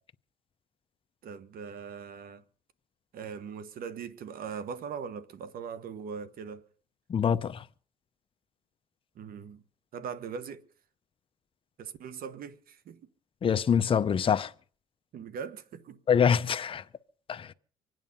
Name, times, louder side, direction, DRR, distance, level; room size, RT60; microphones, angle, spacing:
voice 1, 1.2-2.4 3.1-6.7 9.1-9.6 9.9-10.7 11.8-13.0 15.1-16.0, right 6 dB, 60° right, 1.4 m, -40 dB
voice 2, 7.1-7.6 13.4-14.5 16.1-16.8 17.3-17.5, left 7 dB, 30° left, 0.7 m, -25 dB
25.0 x 9.3 x 5.4 m
cardioid pair, 110°, 17 cm